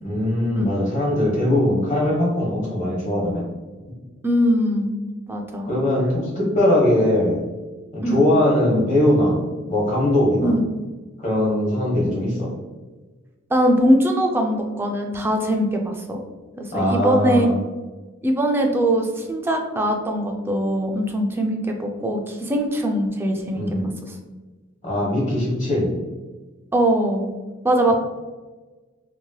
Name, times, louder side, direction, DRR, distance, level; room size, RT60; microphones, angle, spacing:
voice 1, 0.0-3.4 5.7-7.4 7.9-9.4 9.7-10.5 11.2-12.5 16.7-17.6 23.5-23.9 24.8-25.9, left 1 dB, 35° left, -4 dB, 1.1 m, -20 dB
voice 2, 4.2-5.0 5.3-5.7 8.0-8.2 10.4-10.7 13.5-16.2 16.6-17.5 18.2-23.6 24.0-24.1 26.7-27.3 27.6-27.9, equal, 10° right, 2 dB, 0.3 m, -21 dB
3.0 x 2.7 x 2.2 m, 1.2 s
head